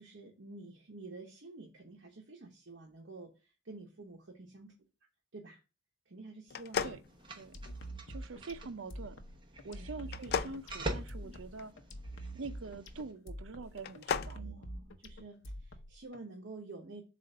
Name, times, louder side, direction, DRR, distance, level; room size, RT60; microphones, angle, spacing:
voice 1, 0.0-4.7 5.3-5.6 6.1-7.0 7.7-7.9 9.7-9.9 11.2-11.3 14.3-17.0, right 3 dB, 65° right, 1.0 m, -50 dB
sound 1, 6.5-7.9 10.1-11.6 13.7-14.4, left 7 dB, 55° left, 0.4 m, -36 dB
sound 2, 7.0-13.1, right 1 dB, 25° right, 1.0 m, -45 dB
sound 3, 7.5-16.2, right 1 dB, 75° left, 0.8 m, -46 dB
voice 2, 8.1-9.2 9.6-11.7 12.3-14.5, right 3 dB, 90° right, 0.6 m, -45 dB
7.5 x 2.5 x 5.4 m
head